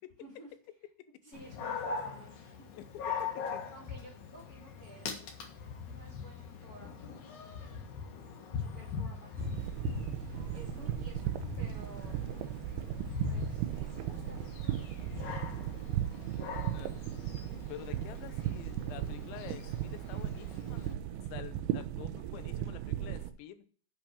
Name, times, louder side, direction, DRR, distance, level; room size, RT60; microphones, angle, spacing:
voice 1, 0.2-0.5 1.2-2.6 3.7-5.3 5.8-7.9 8.5-9.7 10.5-11.3 11.6-12.2 13.2-15.4, right 1 dB, 25° left, -2 dB, 2.1 m, -54 dB
Dog, 1.3-20.9, left 6 dB, 60° left, 2.3 m, -42 dB
voice 2, 2.8-3.7 16.7-17.0 17.7-23.7, left 12 dB, 80° left, 12 dB, 3.1 m, -48 dB
sound 1, 9.4-23.3, right 12 dB, 75° right, 2.6 m, -37 dB
8.7 x 6.1 x 7.2 m, 0.43 s
omnidirectional pair, 5.2 m